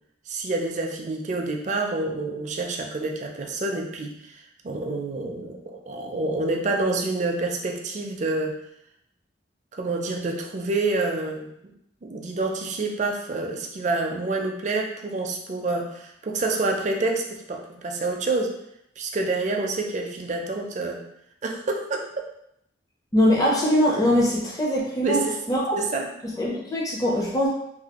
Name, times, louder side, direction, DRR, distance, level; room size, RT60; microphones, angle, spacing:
voice 1, 0.3-8.6 9.7-11.5 12.0-18.6 19.0-21.0 21.4-22.1 25.0-25.4 25.8-26.1, right 3 dB, 40° right, 2 dB, 0.4 m, -28 dB
voice 2, 23.1-25.7 26.2-27.5, equal, 20° left, -5 dB, 0.5 m, -22 dB
3.3 x 2.3 x 2.8 m, 0.77 s
head